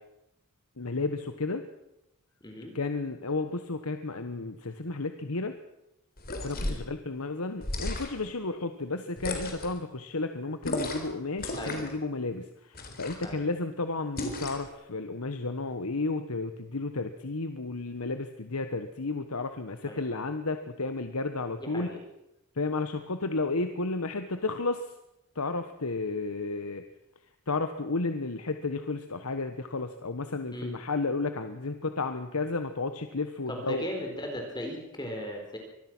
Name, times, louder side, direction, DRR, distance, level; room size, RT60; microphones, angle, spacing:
voice 1, 0.8-1.6 2.7-5.5 6.4-21.9 22.5-24.9 25.3-26.8 27.5-33.9, left 3 dB, 85° left, 8 dB, 1.3 m, -32 dB
voice 2, 2.4-2.7 6.6-6.8 11.5-11.8 13.2-13.5 19.8-20.0 21.6-22.0 30.5-30.7 33.5-35.6, equal, 20° left, 2 dB, 4.2 m, -37 dB
sound 1, 6.2-6.9 7.6-8.3 9.2-9.8 10.6-11.1 11.4-12.0 12.7-13.3 14.2-14.7, left 2 dB, 45° left, 3.9 m, -34 dB
25.0 x 20.0 x 6.2 m, 0.86 s
head